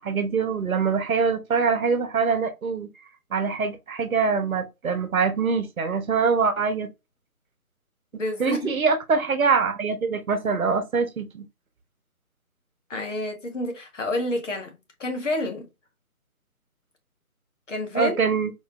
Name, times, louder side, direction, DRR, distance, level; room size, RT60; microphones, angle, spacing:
voice 1, 0.0-2.9 3.3-6.9 8.4-11.5 17.9-18.5, right 5 dB, 70° right, 0.9 m, -24 dB
voice 2, 8.2-8.7 12.9-15.7 17.7-18.2, left 2 dB, 55° left, 1.3 m, -29 dB
4.3 x 2.4 x 2.5 m
figure-of-eight pair, 150°, 44 cm